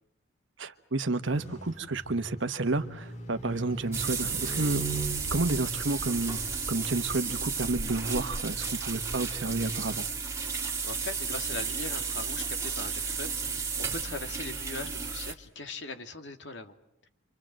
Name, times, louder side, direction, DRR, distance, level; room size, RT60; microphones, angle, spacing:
voice 1, 0.6-4.9 5.3-6.4 6.7-10.1, right 2 dB, 70° right, 8 dB, 1.3 m, -30 dB
sound 1, 1.3-6.8, right 3 dB, 35° left, 2.2 m, -40 dB
sound 2, 3.9-15.3, right 5 dB, 15° right, 2.4 m, -33 dB
voice 2, 10.5-13.3 13.8-16.8, left 3 dB, 60° left, 7 dB, 2.3 m, -40 dB
28.5 x 26.0 x 7.6 m, 0.78 s
head